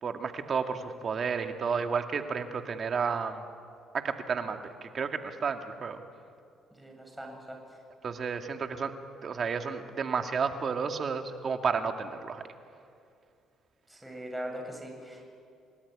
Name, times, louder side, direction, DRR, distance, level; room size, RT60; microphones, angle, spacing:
voice 1, 0.0-3.4 3.9-6.0 8.0-8.9 9.2-12.4, right 5 dB, 50° right, 5 dB, 2.3 m, -31 dB
voice 2, 6.7-7.6 13.9-15.3, equal, 5° right, 1 dB, 7.9 m, -40 dB
28.0 x 19.0 x 10.0 m, 2.4 s
hypercardioid pair, 60°, 0 cm